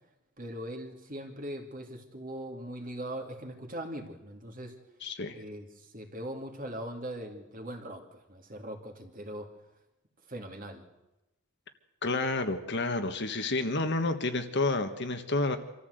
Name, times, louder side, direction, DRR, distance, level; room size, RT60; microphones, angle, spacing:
voice 1, 0.4-4.7 5.3-9.5 10.3-10.8, right 1 dB, 40° right, 3 dB, 2.6 m, -40 dB
voice 2, 5.0-5.3 12.0-15.6, left 2 dB, 55° left, 7 dB, 1.6 m, -30 dB
25.5 x 14.0 x 8.0 m, 0.96 s
head